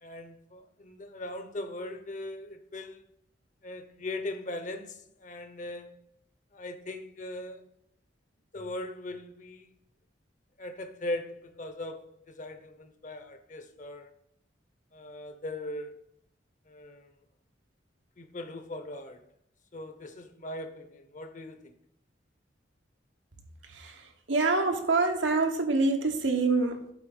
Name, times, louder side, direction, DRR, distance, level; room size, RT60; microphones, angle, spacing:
voice 1, 0.0-3.0 3.6-5.9 6.5-7.6 8.5-9.7 10.6-14.1 14.9-15.9 16.7-17.1 18.2-19.2 19.7-21.7, left 1 dB, 40° left, 0.8 m, -39 dB
voice 2, 23.6-26.9, right 3 dB, 90° right, 1.2 m, -26 dB
8.3 x 4.1 x 5.4 m
head